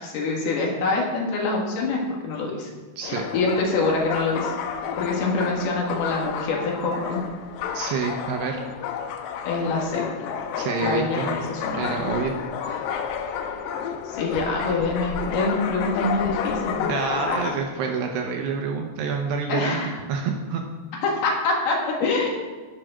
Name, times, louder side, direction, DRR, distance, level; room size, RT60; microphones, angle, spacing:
voice 1, 0.0-2.7 3.0-4.5 5.0-7.2 9.4-10.1 10.8-11.8 14.1-16.9 17.3-17.5 19.5-20.0 21.0-22.3, left 3 dB, 60° left, -1 dB, 3.3 m, -25 dB
sound 1, 3.0-17.6, left 7 dB, 80° left, 2.4 m, -31 dB
voice 2, 7.7-8.6 10.6-11.3 11.7-12.3 12.6-13.0 16.9-19.8 20.1-20.6, right 5 dB, 80° right, 2 dB, 2.5 m, -28 dB
11.5 x 7.4 x 6.1 m, 1.4 s
omnidirectional pair, 5.7 m